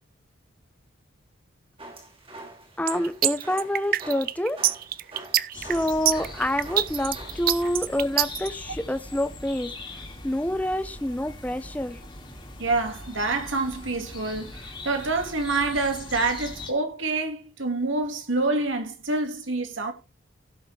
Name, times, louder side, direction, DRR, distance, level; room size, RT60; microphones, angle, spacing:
sound 1, 1.8-7.7, right 2 dB, 30° right, 2.6 m, -45 dB
voice 1, 2.8-4.6 5.5-9.7 10.2-12.0, left 1 dB, 5° left, 0.7 m, -27 dB
sound 2, 2.9-8.5, right 13 dB, 45° right, 0.5 m, -24 dB
sound 3, 5.5-16.7, left 2 dB, 25° left, 2.4 m, -41 dB
voice 2, 12.6-19.9, right 3 dB, 75° right, 2.2 m, -27 dB
16.5 x 6.5 x 3.4 m
head